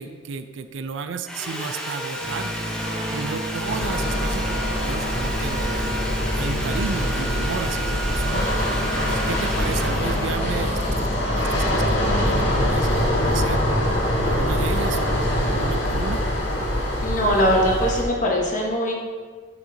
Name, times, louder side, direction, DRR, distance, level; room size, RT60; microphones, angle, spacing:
voice 1, 0.0-2.5 3.1-13.7 14.2-16.2, right 5 dB, 80° right, 9 dB, 0.5 m, -33 dB
Sawing, 1.3-12.3, right 1 dB, 5° left, 0.7 m, -32 dB
sound 1, 2.2-12.7, equal, 25° right, 1.3 m, -35 dB
sound 2, 3.7-18.0, left 1 dB, 70° left, 1.7 m, -24 dB
voice 2, 17.0-18.9, equal, 40° left, -2 dB, 1.3 m, -21 dB
8.7 x 6.2 x 2.8 m, 1.5 s
head